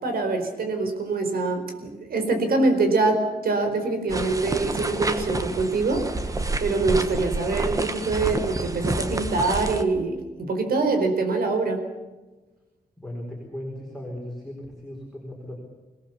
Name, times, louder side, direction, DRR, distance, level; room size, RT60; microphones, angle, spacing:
voice 1, 0.0-11.8, right 3 dB, 80° right, 6 dB, 4.6 m, -24 dB
sound 1, 4.1-9.8, right 2 dB, 20° right, 1.4 m, -29 dB
voice 2, 13.0-15.5, left 1 dB, ahead, -1 dB, 4.8 m, -37 dB
25.5 x 18.0 x 7.2 m, 1.2 s
wide cardioid pair, 160°, 15 cm